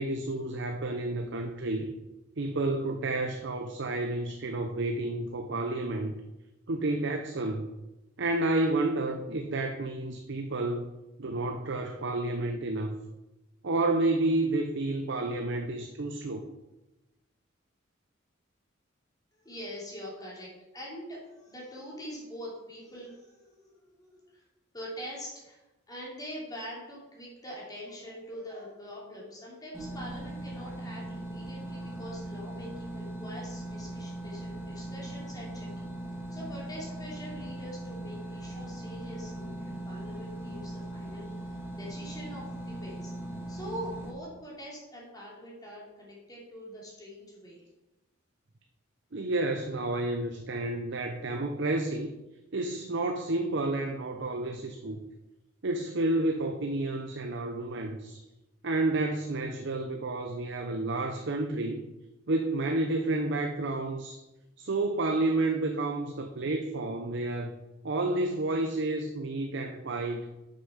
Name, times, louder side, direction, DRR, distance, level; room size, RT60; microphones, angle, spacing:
voice 1, 0.0-1.9 2.4-6.1 6.7-7.8 8.2-10.9 11.2-13.0 13.6-16.5 49.1-52.1 52.5-55.0 55.6-58.2 58.6-61.8 62.3-64.2 64.6-67.5 67.8-70.3, right 2 dB, 65° right, 5 dB, 0.8 m, -30 dB
voice 2, 19.3-24.4 24.7-25.6 25.9-35.9 36.3-43.1 43.5-47.6, equal, 20° left, -5 dB, 2.9 m, -44 dB
sound 1, 29.7-44.1, right 1 dB, 10° right, 2.0 m, -39 dB
8.1 x 6.6 x 5.7 m, 1.0 s
head